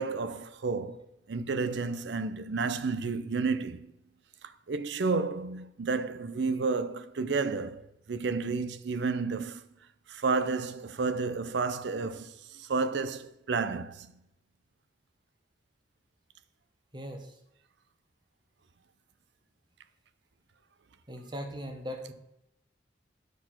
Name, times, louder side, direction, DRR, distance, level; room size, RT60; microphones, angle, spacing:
voice 1, 0.0-3.9 4.7-9.6 10.1-14.1, right 4 dB, 70° right, 0.5 m, -31 dB
voice 2, 16.9-17.4 21.1-22.1, equal, 25° right, 1.0 m, -39 dB
9.2 x 4.4 x 5.9 m
head